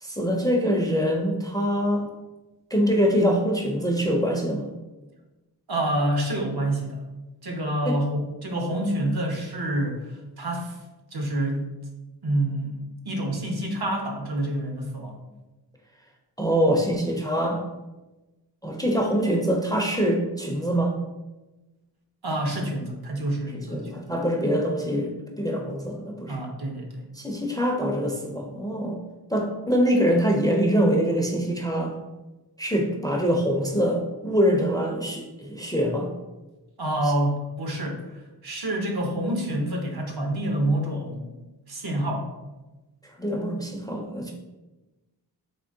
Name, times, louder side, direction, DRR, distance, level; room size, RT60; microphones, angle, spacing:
voice 1, 0.0-2.1 2.7-4.7 7.9-8.0 16.4-17.6 18.6-20.9 23.6-26.4 27.2-29.0 29.3-31.9 32.6-36.1 43.2-44.3, equal, 10° left, 1 dB, 0.4 m, -24 dB
voice 2, 5.7-7.0 7.4-10.8 11.1-11.7 12.2-12.8 13.0-15.2 22.2-24.1 26.3-27.0 36.8-41.3 41.7-42.3, right 1 dB, 65° right, 2 dB, 0.8 m, -27 dB
3.6 x 3.0 x 2.6 m, 1.1 s
wide cardioid pair, 55°, 41 cm